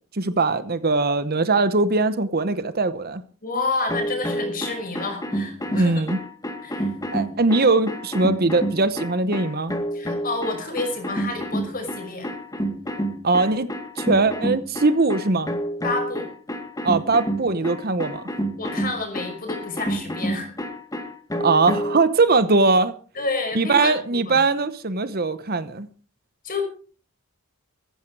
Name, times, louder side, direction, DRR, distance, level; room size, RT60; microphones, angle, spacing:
voice 1, 0.1-3.2 5.7-6.2 7.1-9.8 13.2-13.7 14.0-15.5 16.8-18.3 21.4-23.0 23.5-25.9, right 3 dB, 45° right, 0.9 m, -21 dB
voice 2, 3.4-6.0 6.6-6.9 9.9-12.3 15.8-16.3 18.6-20.5 23.2-24.4 26.4-26.6, left 3 dB, 40° left, 5.7 m, -29 dB
sound 1, 3.9-22.0, right 1 dB, 15° left, 2.1 m, -29 dB
15.0 x 15.0 x 4.8 m
head